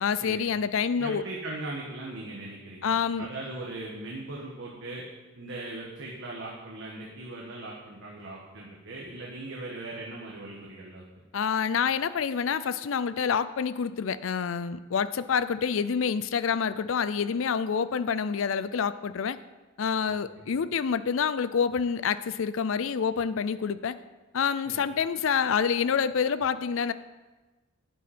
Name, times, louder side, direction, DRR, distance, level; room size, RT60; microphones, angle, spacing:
voice 1, 0.0-1.2 2.8-3.3 11.3-19.4 19.8-24.0 24.3-26.9, left 6 dB, 70° left, 15 dB, 0.4 m, -27 dB
voice 2, 1.0-5.0 5.3-11.0 20.1-20.4 24.6-24.8, right 2 dB, 65° right, -3 dB, 1.5 m, -39 dB
10.5 x 9.6 x 4.3 m, 1.2 s
head